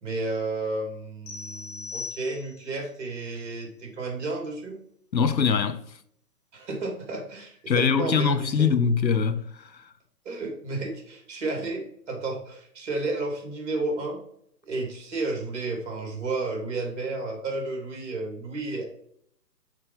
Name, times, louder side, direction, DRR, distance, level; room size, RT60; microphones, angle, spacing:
voice 1, 0.0-4.8 6.5-8.7 10.2-14.2 14.7-18.9, right 3 dB, 45° right, 2.8 m, -32 dB
sound 1, 1.3-2.8, left 5 dB, 20° left, 1.8 m, -39 dB
voice 2, 5.1-5.8 7.7-9.4, left 6 dB, 90° left, 0.9 m, -22 dB
6.6 x 4.4 x 5.4 m
figure-of-eight pair, 145°, 50 cm